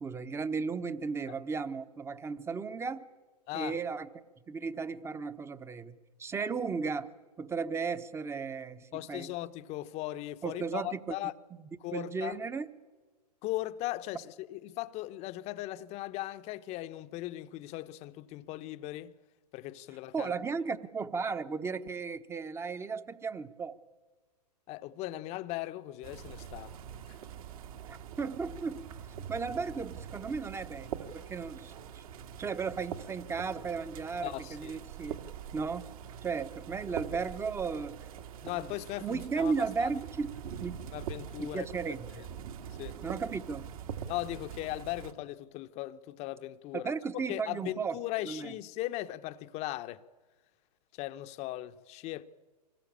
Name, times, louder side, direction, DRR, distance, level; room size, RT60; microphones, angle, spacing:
voice 1, 0.0-3.1 3.5-4.1 4.5-5.9 6.2-7.1 7.4-9.3 10.4-11.1 11.9-12.7 20.1-23.8 27.9-28.9 29.3-32.0 32.4-35.2 35.5-35.9 36.2-38.0 38.5-38.6 39.0-40.3 40.6-40.8 41.4-42.3 43.0-43.7 46.7-48.0 48.2-48.5, right 5 dB, 10° right, 1.0 m, -35 dB
voice 2, 8.9-11.3 11.8-12.4 13.4-19.1 19.5-20.3 24.7-26.8 27.1-27.2 34.2-34.8 38.4-39.5 39.8-39.9 40.9-42.3 42.8-43.0 44.1-50.0 50.9-52.2, left 16 dB, 30° left, 0.9 m, -38 dB
sound 1, 26.0-45.1, right 8 dB, 55° right, 2.3 m, -44 dB
25.0 x 20.0 x 8.7 m
hypercardioid pair, 115°, 21 cm